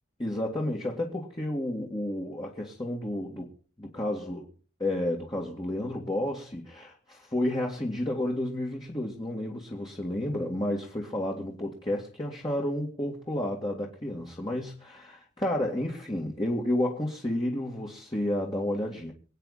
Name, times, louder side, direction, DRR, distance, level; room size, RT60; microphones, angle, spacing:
voice 1, 0.2-3.5 3.8-4.5 4.8-19.1, left 1 dB, 25° left, 2.3 m, -31 dB
25.0 x 9.2 x 4.2 m
head